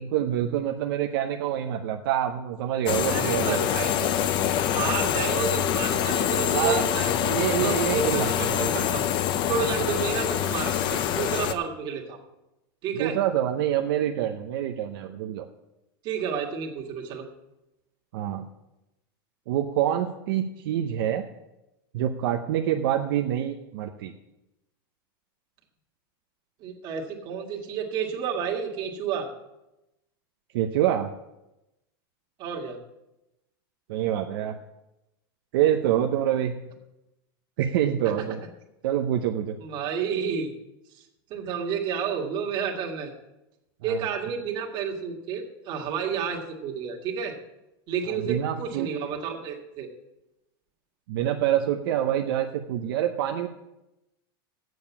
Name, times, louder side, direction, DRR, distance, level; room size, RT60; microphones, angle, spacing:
voice 1, 0.0-3.7 6.5-6.9 7.1-8.7 12.9-15.5 18.1-18.5 19.5-21.2 21.9-24.1 30.5-31.1 33.9-34.6 35.5-36.6 37.6-38.4 38.8-39.6 43.9-44.0 48.1-49.1 51.1-53.5, right 11 dB, 65° right, 4 dB, 0.7 m, -26 dB
sound 1, 2.9-11.5, left 10 dB, 40° left, 0.7 m, -25 dB
voice 2, 3.1-4.3 4.7-7.1 7.6-9.1 9.5-12.2 12.8-13.2 16.0-17.3 26.6-29.3 32.4-32.8 39.6-40.5 40.9-41.0 41.3-43.1 43.8-47.3 47.9-49.9, right 6 dB, 40° right, 0 dB, 1.9 m, -31 dB
7.9 x 7.0 x 8.4 m, 0.94 s
supercardioid pair, 150°, 12 cm